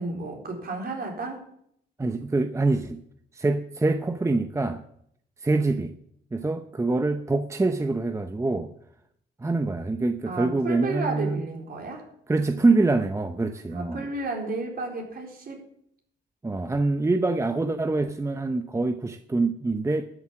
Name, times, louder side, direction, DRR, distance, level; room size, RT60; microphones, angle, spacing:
voice 1, 0.0-1.4 10.3-12.1 13.7-15.7, right 3 dB, 50° right, 0 dB, 4.1 m, -32 dB
voice 2, 2.0-3.0 3.3-4.8 5.4-5.9 6.3-8.7 9.4-11.4 12.3-14.1 16.4-20.0, right 3 dB, 15° right, 8 dB, 0.7 m, -25 dB
12.0 x 7.3 x 7.4 m, 0.70 s
cardioid pair, 90°, 20 cm